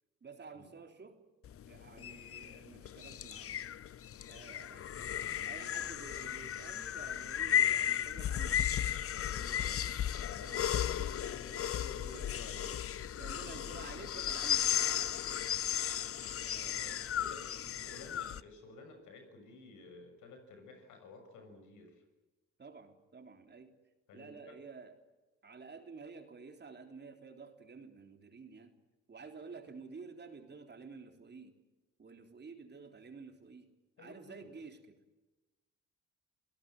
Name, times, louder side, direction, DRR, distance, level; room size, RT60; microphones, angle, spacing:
voice 1, 0.2-1.2 1.7-3.5 4.3-4.9 5.5-8.6 10.4-10.6 11.0-11.7 12.1-12.3 12.7-14.7 15.6-15.9 16.4-17.0 22.6-23.7 24.1-25.0 25.4-28.7 29.1-31.5 32.0-35.0, right 4 dB, 35° right, 5 dB, 3.6 m, -51 dB
sound 1, 1.4-18.4, left 10 dB, 50° left, 0.7 m, -35 dB
voice 2, 5.3-5.8 9.1-9.8 10.2-12.7 16.6-22.0 24.1-24.6 34.0-34.5, left 3 dB, 85° left, 6 dB, 6.9 m, -52 dB
27.5 x 17.5 x 9.4 m, 1.1 s
cardioid pair, 90°, 30 cm